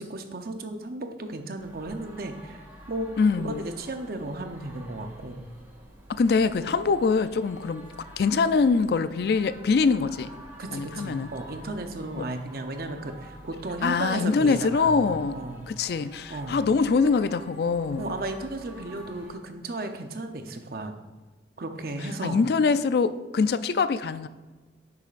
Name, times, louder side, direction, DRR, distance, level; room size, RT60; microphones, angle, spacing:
voice 1, 0.0-3.1 3.4-5.4 10.6-15.7 16.3-16.6 18.0-20.9 21.6-22.4, right 2 dB, 55° right, 0.7 m, -34 dB
sound 1, 1.6-19.3, right 1 dB, 15° right, 2.0 m, -48 dB
voice 2, 3.2-3.6 6.1-7.9 8.2-10.3 10.7-11.3 13.8-15.4 15.7-18.2 22.2-24.3, left 4 dB, 60° left, 0.3 m, -24 dB
9.8 x 7.0 x 2.5 m
head